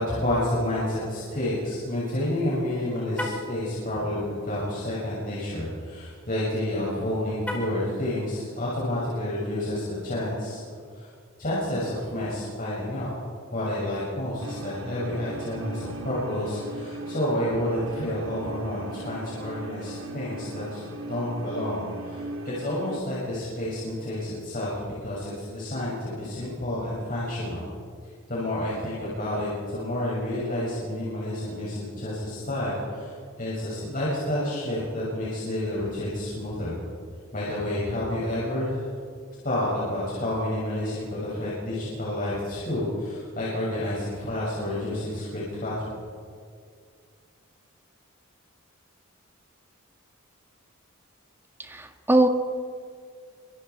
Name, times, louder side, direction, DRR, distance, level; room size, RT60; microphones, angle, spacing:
voice 1, 0.0-10.6 10.9-11.1 11.4-13.1 13.5-27.6 28.3-36.8 37.3-38.9 39.4-45.9, left 1 dB, 40° left, -7 dB, 6.8 m, -29 dB
Car, 3.1-3.5 7.4-7.9, left 1 dB, 5° left, 5.6 m, -33 dB
sound 1, 14.4-23.0, right 2 dB, 90° right, 3.2 m, -39 dB
voice 2, 51.6-52.3, right 1 dB, 10° right, 5 dB, 1.5 m, -21 dB
29.0 x 26.0 x 4.8 m, 2.1 s
head